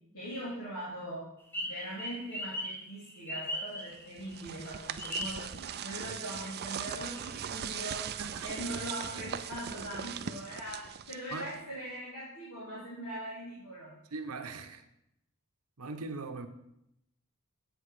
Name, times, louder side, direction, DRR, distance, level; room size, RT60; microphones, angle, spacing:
voice 1, 0.1-1.3 1.6-14.0, right 1 dB, 85° left, 2.9 m, -41 dB
sound 1, 1.5-4.3 5.0-6.1 6.4-6.5 6.9-7.9, equal, 10° left, 1.1 m, -38 dB
sound 2, 3.9-11.7, right 8 dB, 45° right, 0.5 m, -40 dB
voice 2, 8.2-8.5 11.3-11.5 14.1-14.8 15.8-16.5, right 3 dB, 75° right, 0.9 m, -40 dB
8.2 x 8.2 x 4.9 m
head